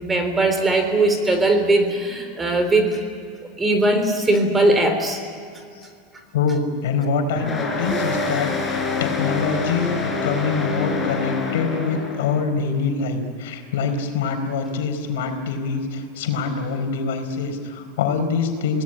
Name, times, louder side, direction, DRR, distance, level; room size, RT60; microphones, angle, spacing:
voice 1, 0.0-3.0 3.6-5.2, right 2 dB, 15° right, 6 dB, 3.5 m, -19 dB
voice 2, 6.3-18.8, left 5 dB, 85° left, 6 dB, 4.3 m, -24 dB
sound 1, 7.4-12.5, left 4 dB, 15° left, 4.1 m, -26 dB
26.0 x 18.5 x 9.9 m, 2.3 s
supercardioid pair, 140°, 0 cm